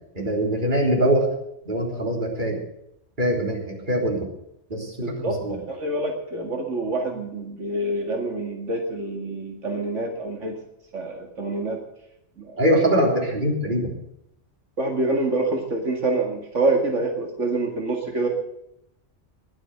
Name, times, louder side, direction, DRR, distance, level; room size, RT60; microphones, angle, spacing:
voice 1, 0.1-1.3 1.7-2.6 3.2-4.3 4.7-4.9 5.2-5.6 12.6-13.9, right 1 dB, 40° right, 0 dB, 3.8 m, -23 dB
voice 2, 5.0-5.3 5.7-10.5 10.9-11.8 12.4-13.1 14.8-18.3, right 2 dB, 85° right, 2 dB, 2.5 m, -26 dB
20.5 x 7.6 x 8.1 m, 0.77 s
omnidirectional pair, 1.2 m